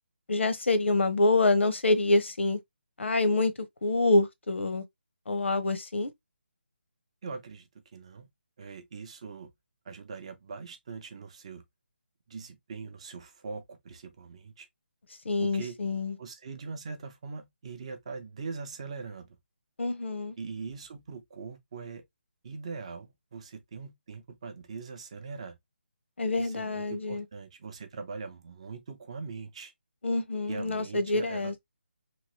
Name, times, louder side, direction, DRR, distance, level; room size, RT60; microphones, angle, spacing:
voice 1, 0.3-2.6 3.0-3.5 3.8-4.8 5.3-6.1 15.2-16.2 19.8-20.4 26.2-27.2 30.0-31.6, left 2 dB, 80° left, 0.8 m, -26 dB
voice 2, 7.2-8.3 8.6-9.5 9.9-11.6 12.3-14.7 15.4-15.8 16.2-19.3 20.4-22.0 22.4-25.6 26.4-29.7 30.5-31.5, right 4 dB, 30° right, 0.6 m, -41 dB
3.0 x 2.6 x 3.0 m
hypercardioid pair, 170°, 6 cm